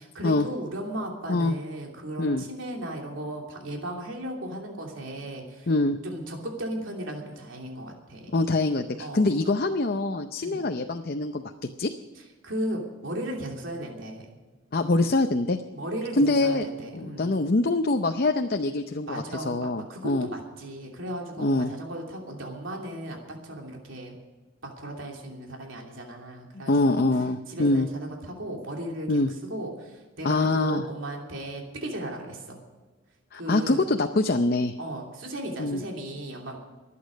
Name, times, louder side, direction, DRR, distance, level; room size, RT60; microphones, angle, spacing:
voice 1, 0.0-5.7 6.0-8.3 9.0-9.3 10.4-10.6 12.4-14.4 15.7-17.3 19.1-24.2 24.6-27.1 27.5-29.2 29.5-32.6 33.3-33.8 34.8-36.6, right 1 dB, 70° right, 0 dB, 2.9 m, -36 dB
voice 2, 5.7-6.0 8.3-11.4 11.8-11.9 14.7-15.6 16.2-16.7 16.9-20.3 21.4-21.7 26.7-27.9 29.1-29.3 30.2-30.8 33.3-34.8 35.6-35.8, left 2 dB, 45° left, 6 dB, 0.6 m, -24 dB
23.0 x 8.6 x 5.2 m, 1.3 s
head